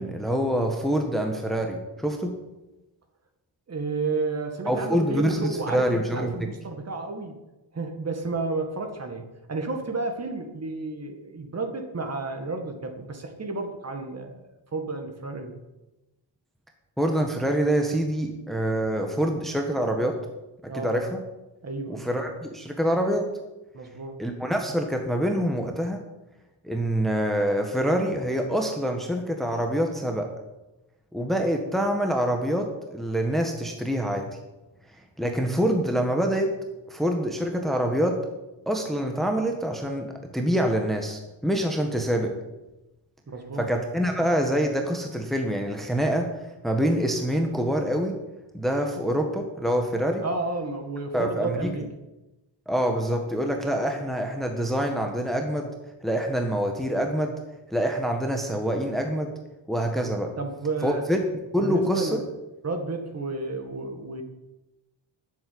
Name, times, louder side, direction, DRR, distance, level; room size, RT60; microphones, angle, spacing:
voice 1, 0.0-2.3 4.7-6.5 17.0-20.2 20.6-21.2 21.9-23.3 24.2-26.0 26.6-30.3 31.1-34.3 35.2-36.5 36.9-38.2 38.7-42.3 43.6-46.3 46.6-48.1 48.5-50.2 51.1-51.7 52.7-55.7 56.0-57.3 57.7-59.3 59.7-60.3 60.8-61.2 61.5-62.2, equal, ahead, 3 dB, 1.3 m, -26 dB
voice 2, 3.7-7.3 7.7-15.6 20.7-20.9 21.6-22.1 23.7-24.2 43.3-43.7 50.2-51.8 60.4-61.1 61.6-62.2 62.6-64.2, right 3 dB, 35° right, 5 dB, 2.0 m, -31 dB
12.0 x 7.6 x 8.6 m, 1.0 s
wide cardioid pair, 140°, 46 cm